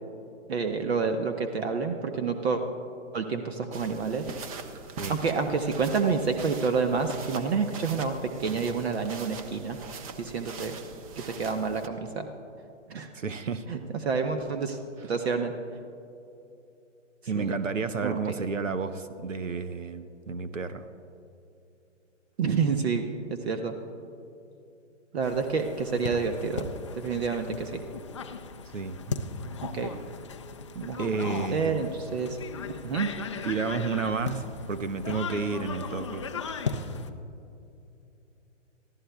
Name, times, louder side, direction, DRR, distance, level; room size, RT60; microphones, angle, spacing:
voice 1, 0.5-2.6 3.1-4.2 5.1-9.8 10.2-10.8 11.3-12.3 12.9-13.1 13.7-13.8 14.0-14.8 15.1-15.5 17.3-17.5 18.0-18.3 22.4-23.1 23.4-23.7 25.1-26.7 26.9-27.8 29.7-29.9 30.7-31.0 31.5-32.4 32.8-33.1, right 5 dB, 55° right, 6 dB, 1.0 m, -28 dB
sound 1, 3.7-11.9, right 5 dB, 30° right, 0.8 m, -42 dB
voice 2, 13.1-13.6 15.0-15.1 17.3-20.9 28.7-29.2 31.0-31.8 33.4-36.2, right 4 dB, 90° right, 11 dB, 0.8 m, -31 dB
sound 2, 25.2-37.1, left 5 dB, 25° left, 0.4 m, -37 dB
24.0 x 14.5 x 2.3 m, 2.8 s
hypercardioid pair, 135°, 37 cm